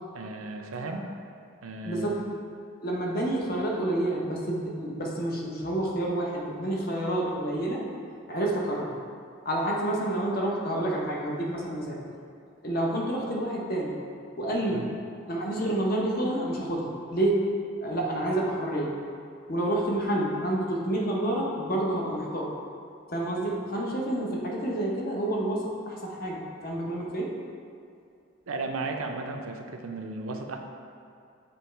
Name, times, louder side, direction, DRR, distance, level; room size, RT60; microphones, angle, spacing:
voice 1, 0.1-1.1 1.6-2.2 14.7-14.9 28.5-30.6, right 3 dB, 80° right, 3 dB, 0.5 m, -35 dB
voice 2, 1.8-2.2 2.8-7.8 8.3-8.9 9.4-12.0 12.6-14.0 14.4-14.9 15.2-17.5 17.8-19.0 19.5-22.5 23.1-27.4, right 1 dB, 45° left, -2 dB, 0.8 m, -29 dB
7.0 x 3.1 x 4.5 m, 2.4 s
head